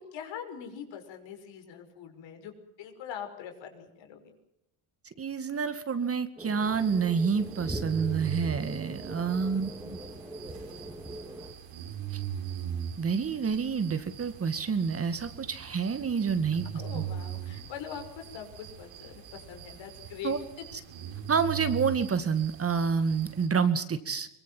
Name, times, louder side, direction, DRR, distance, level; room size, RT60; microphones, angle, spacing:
voice 1, 0.1-4.4 9.3-9.7 16.7-20.3, left 8 dB, 70° left, 6 dB, 6.0 m, -43 dB
voice 2, 5.2-10.0 13.0-16.6 16.9-17.0 20.2-20.4 21.3-24.3, right 6 dB, 30° right, 11 dB, 2.2 m, -28 dB
sound 1, 6.4-11.5, right 1 dB, 5° right, 3.6 m, -42 dB
sound 2, 6.6-23.5, right 9 dB, 80° right, 5.4 m, -40 dB
23.5 x 22.5 x 7.8 m, 0.86 s
cardioid pair, 120°, 45 cm